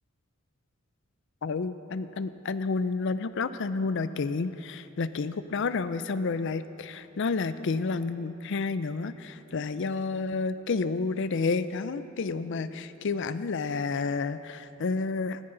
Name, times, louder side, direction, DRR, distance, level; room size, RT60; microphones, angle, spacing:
voice 1, 1.4-15.4, left 4 dB, 60° left, 13 dB, 0.5 m, -30 dB
18.0 x 13.5 x 3.9 m, 2.9 s
head